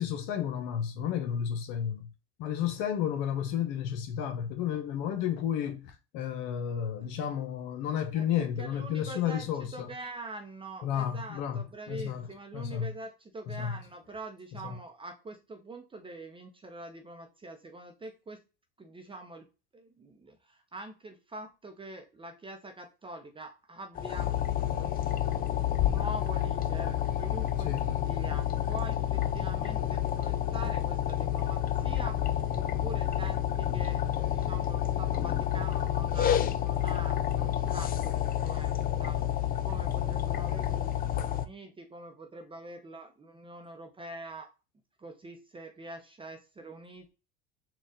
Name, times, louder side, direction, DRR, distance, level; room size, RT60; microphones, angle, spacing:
voice 1, 0.0-2.1 2.4-9.9 10.8-12.3 12.5-12.9 13.5-13.8 14.6-14.8 27.6-28.0 33.7-33.9, left 9 dB, 70° left, 0.8 m, -32 dB
voice 2, 8.1-18.4 18.8-19.5 19.7-24.4 24.7-39.2 39.6-44.5 45.0-47.1, right 2 dB, 20° right, 0.7 m, -45 dB
sound 1, 23.9-41.5, left 11 dB, 30° left, 0.4 m, -29 dB
4.1 x 2.4 x 3.8 m
hypercardioid pair, 90°, 29 cm